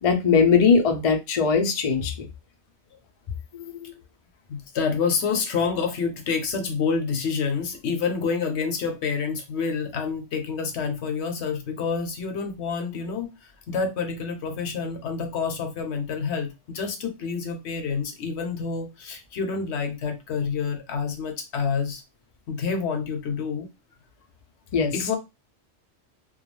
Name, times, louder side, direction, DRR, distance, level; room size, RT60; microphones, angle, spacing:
voice 1, 0.0-2.3 3.5-3.7 24.7-25.1, left 5 dB, 55° left, 0.4 m, -20 dB
voice 2, 4.5-22.0 22.5-23.7 24.9-25.2, left 5 dB, 70° left, 0.9 m, -28 dB
2.3 x 2.3 x 3.0 m
omnidirectional pair, 1.2 m